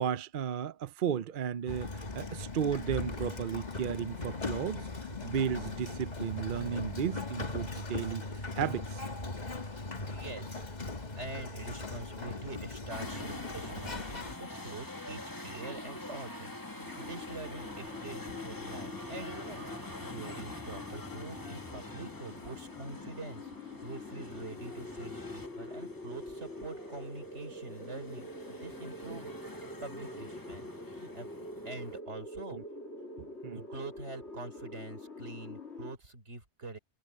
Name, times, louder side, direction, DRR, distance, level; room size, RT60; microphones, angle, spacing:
voice 1, 0.0-4.9 5.2-9.0 20.2-20.3 32.5-32.6 33.2-33.6, right 8 dB, 55° right, 0.7 m, -34 dB
Sliding door, 1.7-14.4, left 3 dB, 40° left, 1.7 m, -39 dB
voice 2, 10.1-10.7 11.2-31.3 31.6-32.6 33.5-36.8, right 2 dB, 80° right, 4.2 m, -45 dB
sound 1, 12.9-32.0, left 1 dB, 20° left, 1.9 m, -45 dB
sound 2, 16.8-35.9, left 2 dB, 75° left, 2.9 m, -45 dB
omnidirectional pair, 1.2 m